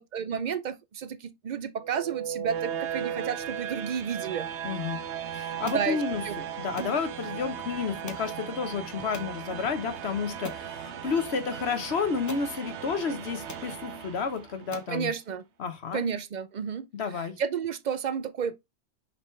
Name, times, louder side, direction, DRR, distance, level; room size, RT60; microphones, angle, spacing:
voice 1, 0.0-4.5 5.7-6.0 6.2-6.4 6.8-6.9 14.9-15.4 15.9-16.8 17.1-18.7, right 7 dB, 55° right, 0.5 m, -32 dB
sound 1, 1.8-14.8, right 9 dB, 75° right, 1.0 m, -37 dB
voice 2, 4.6-5.0 5.3-6.2 6.5-15.1 15.6-16.1 16.9-17.4, left 5 dB, 65° left, 1.3 m, -31 dB
sound 2, 5.7-5.9 6.8-7.0 8.1-8.3 9.1-9.3 9.9-10.0 10.4-10.7 11.7-11.8 12.3-12.5 13.2-13.3 13.5-13.7 14.3-14.4 14.7-15.0, left 2 dB, 15° left, 0.8 m, -42 dB
5.9 x 5.2 x 3.2 m
omnidirectional pair, 1.2 m